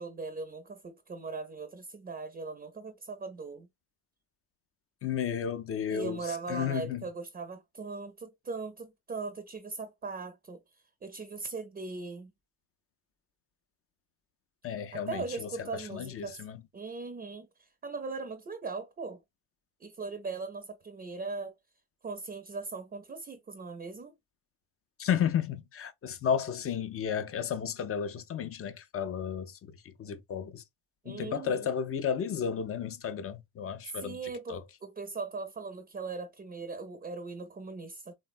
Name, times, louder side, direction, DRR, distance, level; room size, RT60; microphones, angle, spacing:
voice 1, 0.0-3.7 5.9-10.6 11.0-12.3 14.9-16.4 16.7-19.2 19.8-21.5 22.0-24.1 31.0-31.7 33.9-38.1, right 4 dB, 20° right, 0.5 m, -39 dB
voice 2, 5.0-6.2 6.5-7.0 14.6-16.6 25.0-30.6 31.1-34.2 34.5-34.6, left 8 dB, 30° left, 0.4 m, -33 dB
3.1 x 2.2 x 2.3 m
supercardioid pair, 70°, 48 cm